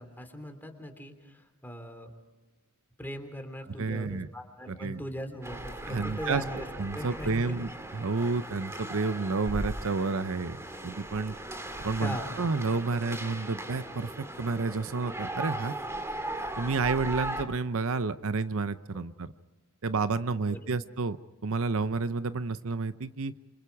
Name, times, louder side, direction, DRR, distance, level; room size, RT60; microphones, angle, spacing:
voice 1, 0.0-2.1 3.0-7.5 12.0-12.3 20.5-20.6, equal, 10° left, 5 dB, 3.2 m, -40 dB
voice 2, 3.8-4.3 4.7-5.0 5.9-6.4 6.8-7.7 8.0-11.4 11.8-15.7 16.6-19.3 19.8-21.2 21.4-23.3, right 4 dB, 65° right, 13 dB, 0.7 m, -30 dB
sound 1, 5.4-17.4, right 1 dB, 10° right, 2.4 m, -38 dB
27.5 x 26.5 x 4.7 m, 1.2 s
head